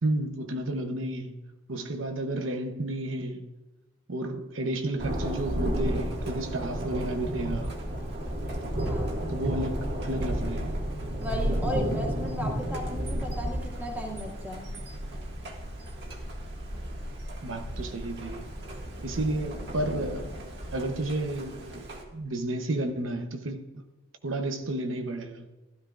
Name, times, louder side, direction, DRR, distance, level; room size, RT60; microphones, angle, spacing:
voice 1, 0.0-3.5 4.1-7.7 9.3-10.7 17.4-18.5 19.0-20.3 20.7-21.9 22.1-23.6 24.2-25.5, right 1 dB, 80° right, 0.9 m, -32 dB
Thunder, 5.0-22.0, right 1 dB, 55° right, 1.8 m, -33 dB
voice 2, 8.9-9.2 11.2-14.7, equal, 10° right, 2.0 m, -35 dB
16.0 x 12.5 x 2.4 m
head